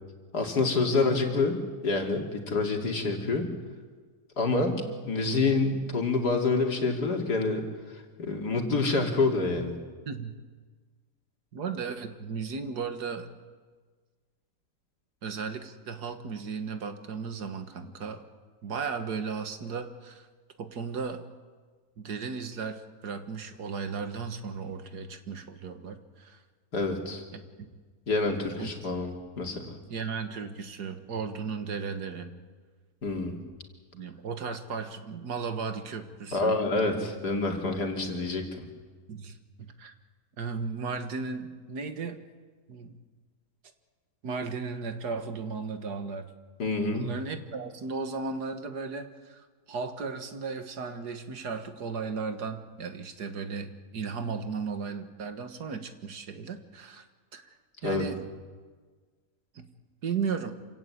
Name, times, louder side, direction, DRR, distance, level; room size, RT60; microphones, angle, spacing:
voice 1, 0.3-3.5 4.4-9.7 26.7-27.2 28.1-29.8 33.0-33.4 36.3-38.7 46.6-47.1 57.8-58.1, left 3 dB, 70° left, 3 dB, 3.2 m, -27 dB
voice 2, 11.5-13.3 15.2-18.2 18.6-20.3 20.6-21.2 22.0-26.4 27.3-27.4 28.6-28.7 29.9-32.3 33.9-36.6 39.1-39.9 40.4-42.2 42.7-43.0 44.2-46.3 46.9-57.0 57.3-57.5 57.8-58.2 59.6-59.7 60.0-60.5, right 5 dB, 70° right, 8 dB, 2.0 m, -35 dB
27.0 x 17.0 x 8.5 m, 1.5 s
omnidirectional pair, 1.8 m